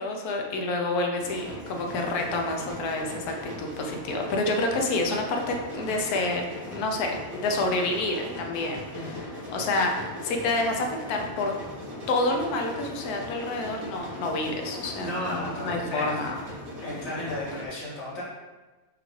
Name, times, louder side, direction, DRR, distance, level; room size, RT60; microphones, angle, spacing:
voice 1, 0.0-11.6 12.1-16.4, left 2 dB, 85° left, 2 dB, 1.1 m, -28 dB
sound 1, 1.2-17.7, left 1 dB, 70° right, 1.8 m, -39 dB
voice 2, 8.9-9.3 14.9-16.3 16.8-18.2, left 1 dB, 60° left, -7 dB, 1.6 m, -34 dB
5.1 x 2.3 x 3.1 m, 1.2 s
omnidirectional pair, 1.6 m